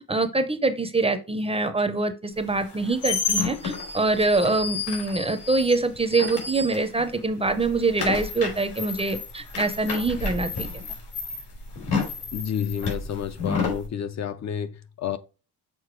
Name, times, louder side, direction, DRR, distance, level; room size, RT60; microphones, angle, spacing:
voice 1, 0.1-10.7, right 3 dB, 15° right, 0.5 m, -24 dB
sound 1, 2.6-7.2 7.5-13.8, left 4 dB, 85° left, 3.4 m, -30 dB
voice 2, 12.3-15.2, left 9 dB, 45° left, 0.5 m, -30 dB
6.8 x 4.2 x 4.5 m
cardioid pair, 150°, 40 cm